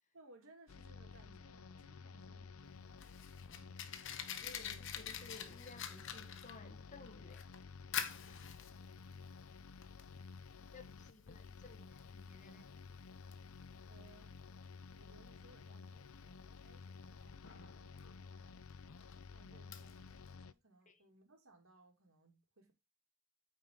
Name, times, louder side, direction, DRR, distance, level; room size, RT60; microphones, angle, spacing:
voice 1, 0.1-4.0 13.7-14.4 15.0-18.6 19.3-22.7, right 2 dB, 75° right, 2.8 m, -65 dB
sound 1, 0.7-20.5, left 5 dB, 80° left, 0.6 m, -53 dB
Fire, 2.6-20.3, left 9 dB, 65° left, 1.1 m, -48 dB
voice 2, 4.4-7.4 10.7-12.7 20.9-21.0, left 3 dB, 35° left, 1.2 m, -56 dB
9.0 x 5.1 x 3.8 m
head